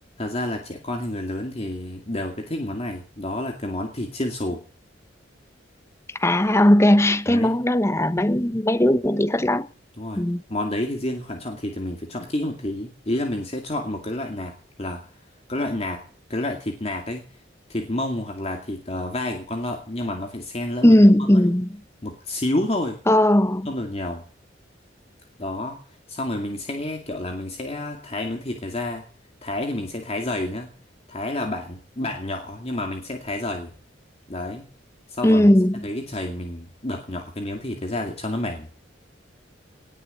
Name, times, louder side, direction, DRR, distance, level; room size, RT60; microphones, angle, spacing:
voice 1, 0.2-4.6 7.3-7.6 10.0-10.2 10.5-15.0 15.5-17.3 17.7-21.3 22.0-23.0 23.7-24.2 25.4-25.8 26.1-29.1 29.4-30.7 31.1-33.7 34.3-34.7 35.1-35.5 35.8-38.7, left 1 dB, 35° left, 2.4 m, -29 dB
voice 2, 6.2-9.7 10.2-10.4 20.8-21.7 23.1-23.7 35.2-35.9, left 1 dB, 15° left, 0.9 m, -17 dB
19.5 x 6.8 x 9.0 m
head